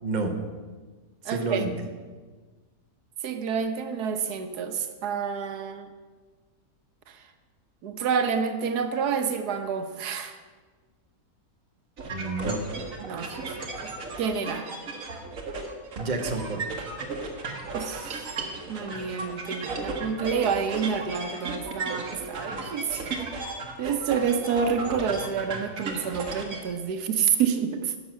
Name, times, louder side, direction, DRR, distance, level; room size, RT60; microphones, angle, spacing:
voice 1, 0.0-0.4 1.2-1.7 12.0-12.6 16.0-16.9, right 3 dB, 30° right, 3 dB, 1.1 m, -30 dB
voice 2, 1.2-1.6 3.2-5.9 7.8-10.4 13.0-13.3 14.2-14.7 17.7-18.3 18.7-23.0 23.8-27.9, right 6 dB, 85° right, 7 dB, 1.4 m, -28 dB
sound 1, 12.0-26.6, right 3 dB, 60° right, 1.8 m, -35 dB
11.5 x 6.3 x 7.4 m, 1.4 s
omnidirectional pair, 1.6 m